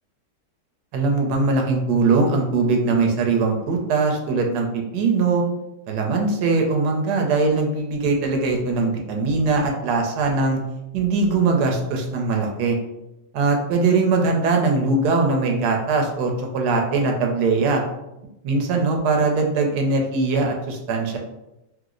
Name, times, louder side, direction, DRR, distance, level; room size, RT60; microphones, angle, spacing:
voice 1, 0.9-5.4 5.9-10.6 10.9-12.8 13.3-17.8 18.4-21.2, right 3 dB, 75° right, 2 dB, 1.2 m, -21 dB
3.1 x 2.0 x 3.6 m, 0.91 s
omnidirectional pair, 1.9 m